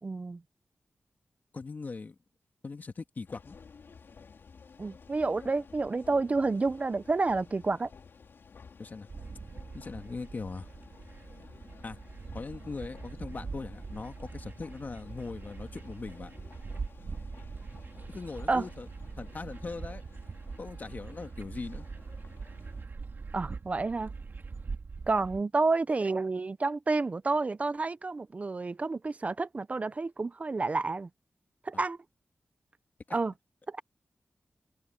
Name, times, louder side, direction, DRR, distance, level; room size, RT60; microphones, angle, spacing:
voice 1, 0.0-0.4 4.8-7.9 18.5-18.7 23.3-24.1 25.1-31.1 31.6-32.0 33.1-33.3 33.7-33.8, right 3 dB, 35° right, 0.6 m, -29 dB
voice 2, 1.5-2.2 2.6-3.6 8.8-9.1 9.7-10.7 11.8-12.0 12.3-16.3 18.1-18.9 19.2-20.0 20.6-21.9 31.7-31.8 33.1-33.2, left 4 dB, 50° left, 1.8 m, -40 dB
sound 1, 3.3-22.9, left 5 dB, 75° left, 3.6 m, -53 dB
sound 2, 9.1-25.4, right 4 dB, 60° right, 3.1 m, -43 dB
wide cardioid pair, 90°, 4 cm